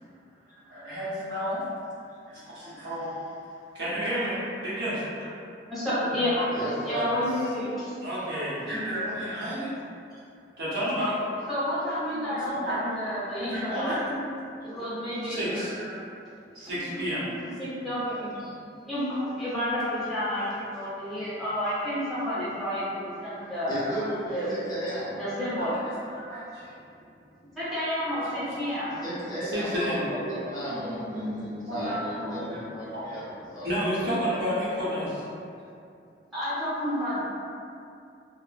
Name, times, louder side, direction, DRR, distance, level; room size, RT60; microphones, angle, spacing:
voice 1, 0.7-1.6 2.3-3.3 3.7-5.0 6.0-7.2 8.0-9.8 10.6-11.2 12.1-13.0 13.3-14.4 14.7-14.9 15.2-16.0 16.5-17.2 17.7-17.8 19.2-19.3 22.3-22.5 23.9-24.1 25.6-26.7 27.4-27.5 28.2-28.9 29.2-30.3 30.6-32.6 32.9-35.2, equal, 70° right, -10 dB, 0.8 m, -32 dB
voice 2, 5.7-6.3 6.8-7.9 11.5-13.9 14.7-15.5 17.6-18.3 18.9-19.1 19.4-23.8 24.3-24.7 25.2-25.7 27.6-28.9 36.3-37.2, equal, ahead, -13 dB, 0.9 m, -30 dB
voice 3, 6.5-7.2 18.4-18.5 20.4-20.5 21.2-21.3 23.7-25.3 28.9-33.7 34.0-34.2 34.7-34.8, equal, 20° left, -10 dB, 0.5 m, -35 dB
2.8 x 2.0 x 2.4 m, 2.5 s
head